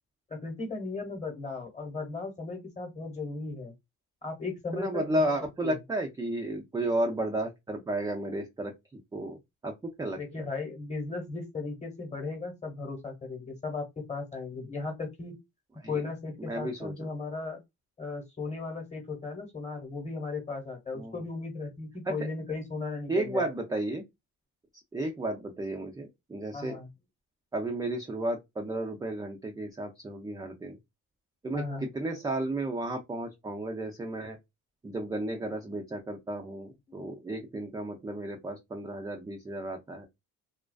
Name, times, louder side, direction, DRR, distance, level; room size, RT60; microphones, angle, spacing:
voice 1, 0.3-3.7 4.2-5.3 5.6-5.8 10.2-15.4 15.9-17.6 18.0-23.5 26.5-26.9 31.5-31.9, left 3 dB, 20° left, 1.0 m, -36 dB
voice 2, 4.7-9.4 9.6-9.7 10.0-10.5 15.8-15.9 16.4-16.9 20.9-21.2 22.1-22.2 23.1-24.0 24.9-26.8 27.5-30.8 31.4-34.4 34.8-40.1, right 1 dB, 10° right, 0.4 m, -33 dB
2.4 x 2.3 x 2.2 m
cardioid pair, 100°, 38 cm